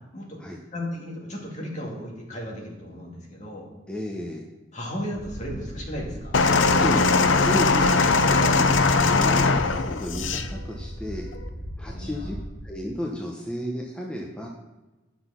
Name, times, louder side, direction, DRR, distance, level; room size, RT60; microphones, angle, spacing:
voice 1, 0.7-3.7 4.7-6.3 10.2-10.3 11.9-12.3, equal, 35° left, -2 dB, 2.1 m, -35 dB
voice 2, 3.9-4.4 6.7-7.1 7.5-7.9 8.2-11.3 11.8-12.4 12.6-14.5, equal, 5° left, -2 dB, 0.8 m, -32 dB
sound 1, 5.1-12.6, equal, 55° right, 1.3 m, -38 dB
sound 2, 6.3-10.5 11.3-11.5, left 3 dB, 75° left, 0.6 m, -20 dB
10.0 x 6.1 x 5.7 m, 1.1 s
head